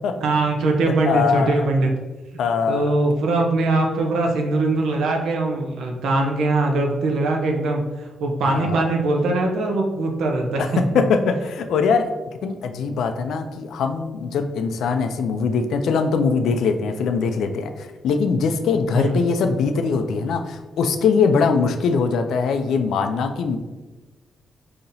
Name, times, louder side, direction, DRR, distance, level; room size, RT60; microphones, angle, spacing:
voice 1, 0.2-1.9 2.7-10.8 18.9-19.2, right 2 dB, 90° right, 2 dB, 0.6 m, -21 dB
voice 2, 1.0-1.5 2.4-2.9 8.4-8.8 10.6-12.1 12.4-23.6, left 5 dB, 85° left, 7 dB, 0.4 m, -22 dB
5.5 x 2.8 x 2.6 m, 1.2 s
wide cardioid pair, 150°, 0 cm